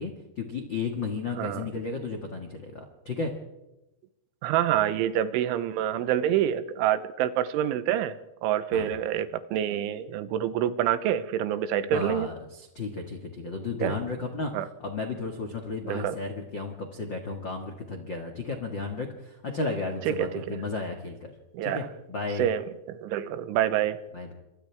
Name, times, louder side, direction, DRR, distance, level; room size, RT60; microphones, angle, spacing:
voice 1, 0.0-3.3 8.7-8.9 11.9-14.5 14.8-21.3 21.6-22.5 24.1-24.3, left 3 dB, 75° left, 3 dB, 1.0 m, -33 dB
voice 2, 1.4-1.7 4.4-12.3 13.8-14.0 14.5-14.7 15.9-16.2 20.1-20.6 21.5-21.9 22.4-24.0, right 11 dB, 85° right, 12 dB, 3.3 m, -27 dB
28.5 x 25.5 x 3.6 m, 0.96 s
omnidirectional pair, 5.6 m